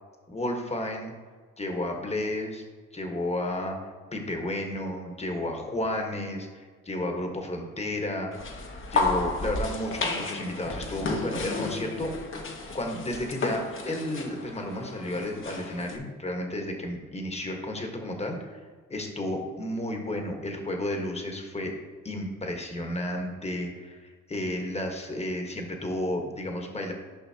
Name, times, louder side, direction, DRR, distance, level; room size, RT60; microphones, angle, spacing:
voice 1, 0.3-1.1 1.6-2.6 2.9-3.8 4.1-8.3 8.9-12.1 12.7-18.6 18.9-21.7 22.0-26.9, left 1 dB, 20° left, 3 dB, 1.3 m, -32 dB
sound 1, 8.3-16.0, left 3 dB, 40° left, 1.1 m, -32 dB
10.5 x 5.5 x 2.9 m, 1.5 s
cardioid pair, 90°, 30 cm